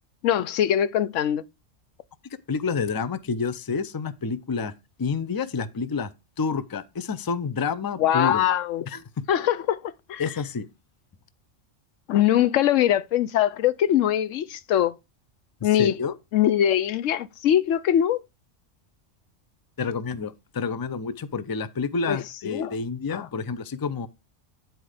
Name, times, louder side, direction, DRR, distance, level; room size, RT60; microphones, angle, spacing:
voice 1, 0.2-1.4 8.0-8.9 9.3-10.2 12.1-15.0 15.6-15.9 16.3-18.2 22.1-22.2 22.4-22.7 23.1-23.3, left 11 dB, 85° left, 1.0 m, -22 dB
voice 2, 2.5-4.7 5.0-6.1 6.4-8.5 8.9-9.0 10.2-10.7 15.6-16.1 19.8-24.1, left 5 dB, 30° left, 0.4 m, -29 dB
10.0 x 4.5 x 4.9 m
omnidirectional pair, 1.3 m